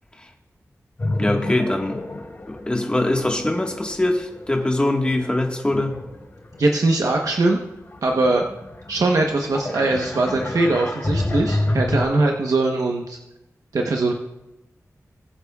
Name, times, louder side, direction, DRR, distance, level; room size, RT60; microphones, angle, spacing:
sound 1, 1.0-6.9 7.4-12.0, left 1 dB, 40° left, 3.4 m, -29 dB
voice 1, 1.2-6.0, left 1 dB, 15° left, 2 dB, 1.5 m, -23 dB
voice 2, 6.6-7.6 8.0-8.4 8.9-13.2 13.7-14.1, right 2 dB, 75° right, 1 dB, 1.0 m, -21 dB
21.0 x 8.2 x 2.4 m, 0.93 s
wide cardioid pair, 115°, 6 cm